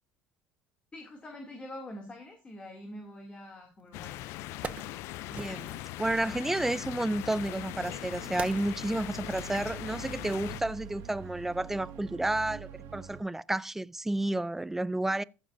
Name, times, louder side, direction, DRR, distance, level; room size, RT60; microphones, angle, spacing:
voice 1, 0.9-4.2, left 1 dB, 20° left, 2.6 m, -45 dB
Wood, 3.8-3.9 4.3-6.0 6.9-10.3 10.6-10.7, right 5 dB, 30° right, 0.7 m, -45 dB
sound 1, 3.9-10.6, left 16 dB, 70° left, 0.5 m, -40 dB
voice 2, 5.3-5.7 6.0-15.2, right 1 dB, 5° right, 0.4 m, -31 dB
sound 2, 7.7-13.2, right 8 dB, 70° right, 1.8 m, -46 dB
14.5 x 7.2 x 2.6 m
supercardioid pair, 95°, 5 cm